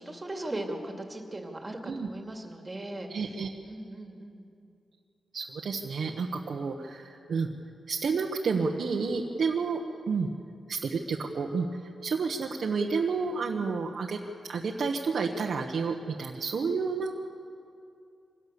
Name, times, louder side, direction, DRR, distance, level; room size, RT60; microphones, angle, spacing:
voice 1, 0.0-3.1 3.6-4.5, right 1 dB, 20° right, 2 dB, 2.7 m, -38 dB
voice 2, 3.1-3.5 5.3-7.5 7.9-10.3 10.7-14.2 14.5-17.1, right 4 dB, 65° right, 0 dB, 1.3 m, -30 dB
25.5 x 17.5 x 7.0 m, 2.5 s
wide cardioid pair, 105°, 0 cm